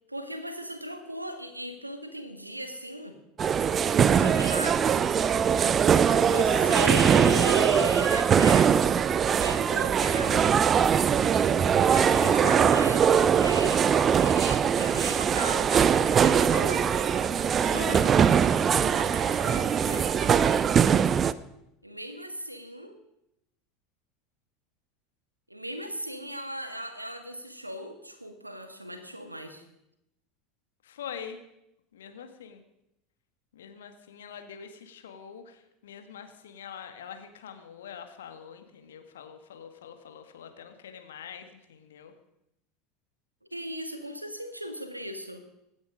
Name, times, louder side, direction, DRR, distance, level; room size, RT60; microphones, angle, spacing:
voice 1, 0.1-3.2 4.0-5.1 6.2-8.7 9.4-10.6 11.9-15.7 16.1-16.9 21.8-23.0 25.5-29.6 43.5-45.4, equal, 90° right, 7 dB, 1.7 m, -37 dB
sound 1, 3.4-21.3, right 7 dB, 30° right, 0.6 m, -22 dB
sound 2, 11.9-20.6, right 7 dB, 70° right, 1.0 m, -44 dB
voice 2, 12.1-12.7 17.6-18.2 19.4-20.1 30.8-31.4 31.9-32.6 33.5-42.1, left 8 dB, 65° left, 7 dB, 1.8 m, -43 dB
24.5 x 9.5 x 5.1 m, 0.84 s
figure-of-eight pair, 75°, 0 cm